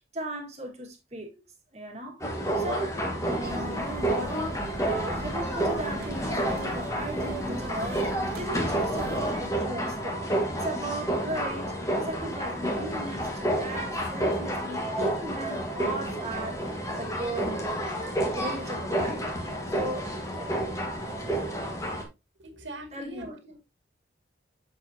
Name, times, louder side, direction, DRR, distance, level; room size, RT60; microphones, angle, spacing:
voice 1, 0.1-1.3 1.7-2.2 2.6-4.4 4.8-10.2 10.6-11.7 12.0-17.6 18.3-19.3 19.7-20.5 22.9-23.6, right 1 dB, 35° right, 1.8 m, -37 dB
sound 1, 2.2-22.0, right 1 dB, 15° left, 1.5 m, -30 dB
sound 2, 3.4-9.5, right 1 dB, 60° right, 1.3 m, -39 dB
voice 2, 22.4-23.6, right 1 dB, 90° right, 2.2 m, -42 dB
7.2 x 6.5 x 2.8 m
head